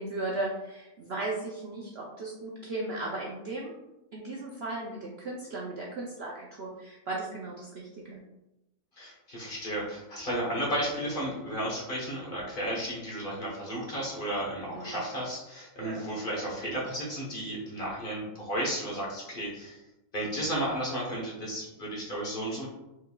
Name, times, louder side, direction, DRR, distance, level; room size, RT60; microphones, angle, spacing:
voice 1, 0.0-3.7 4.1-8.2 14.7-15.0 15.8-16.1, right 2 dB, 60° right, -2 dB, 0.6 m, -36 dB
voice 2, 9.0-19.8 20.1-22.7, right 1 dB, 40° left, -4 dB, 1.1 m, -33 dB
4.6 x 3.7 x 2.2 m, 0.94 s
omnidirectional pair, 1.6 m